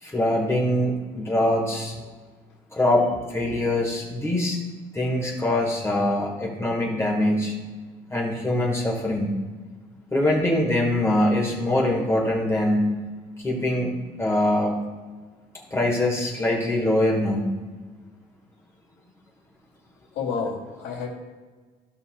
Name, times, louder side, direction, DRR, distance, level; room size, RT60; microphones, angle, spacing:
voice 1, 0.0-1.9 2.7-4.6 4.9-7.5 8.1-9.3 10.1-13.0 13.4-14.7 15.7-17.5, left 1 dB, 15° left, -3 dB, 1.7 m, -23 dB
voice 2, 20.1-21.1, left 5 dB, 85° left, -2 dB, 2.5 m, -31 dB
15.5 x 5.5 x 2.3 m, 1.4 s
cardioid pair, 110°, 17 cm